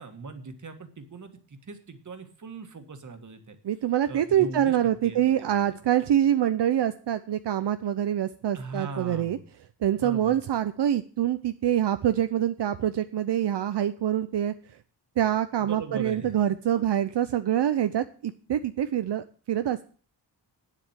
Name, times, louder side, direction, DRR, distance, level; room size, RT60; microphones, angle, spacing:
voice 1, 0.0-3.6 4.1-4.8 5.0-5.8 8.5-9.4 10.0-10.4 15.6-16.4 16.8-16.9, right 3 dB, 45° right, 7 dB, 1.7 m, -40 dB
voice 2, 3.6-9.4 9.8-14.5 15.2-19.9, right 11 dB, 80° right, 10 dB, 0.7 m, -25 dB
9.7 x 7.5 x 8.0 m, 0.41 s
wide cardioid pair, 145°, 41 cm